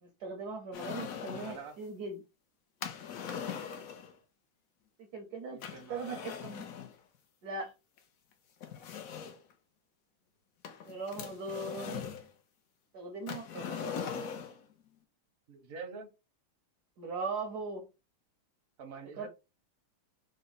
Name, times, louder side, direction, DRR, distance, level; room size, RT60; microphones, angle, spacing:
voice 1, 0.0-2.2 5.0-5.6 5.9-6.7 7.4-7.7 10.8-12.2 12.9-14.0 17.0-17.9 19.2-19.3, right 3 dB, 70° right, 0.9 m, -39 dB
sound 1, 0.7-1.7 2.8-4.1 5.6-6.9 8.0-8.1 8.6-9.5 10.6-12.3 13.3-14.6, left 7 dB, 80° left, 0.7 m, -41 dB
voice 2, 1.4-1.8 5.5-6.4 15.5-16.1 18.8-19.3, right 5 dB, 55° right, 0.7 m, -46 dB
3.9 x 2.1 x 3.9 m
omnidirectional pair, 2.3 m